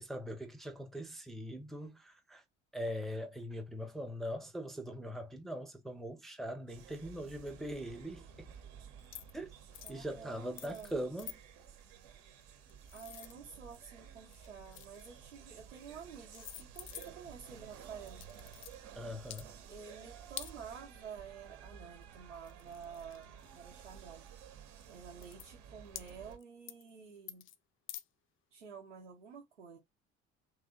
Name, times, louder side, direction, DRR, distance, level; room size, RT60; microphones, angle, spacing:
voice 1, 0.0-2.4 2.7-8.5 9.3-9.5 9.9-11.3 18.9-19.5, equal, ahead, 0.7 m, -41 dB
sound 1, 6.7-26.4, right 8 dB, 60° right, 1.1 m, -54 dB
sound 2, 9.0-9.4 9.7-10.0 10.6-10.9 11.2-11.4 12.4-13.9 14.3-15.2 15.9-16.0 16.3-17.3 18.1-18.8 19.2-19.4 20.4-20.5 22.0-22.1 22.4-23.6 24.3-24.4 24.8-24.9 25.2-25.5 26.0-26.4 26.7-26.9 27.3-27.6 27.9-28.0, left 12 dB, 35° left, 0.5 m, -48 dB
voice 2, 9.8-10.9 12.9-18.3 19.7-24.3 24.9-27.5 28.5-29.8, right 6 dB, 80° right, 1.0 m, -50 dB
3.3 x 3.2 x 3.5 m
figure-of-eight pair, 55°, 35 cm